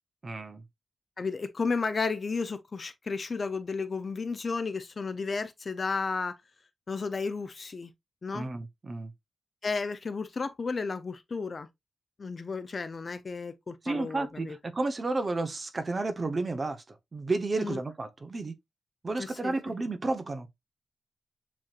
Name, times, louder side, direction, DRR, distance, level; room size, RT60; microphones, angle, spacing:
voice 1, 0.2-0.6 8.3-9.1 13.8-18.5 19.0-20.5, right 3 dB, 35° right, 0.8 m, -32 dB
voice 2, 1.2-6.4 6.9-7.9 8.2-8.5 9.6-11.7 12.2-14.6 17.6-17.8 19.2-19.5, left 4 dB, 40° left, 0.6 m, -33 dB
7.3 x 3.0 x 2.4 m
wide cardioid pair, 125°, 0 cm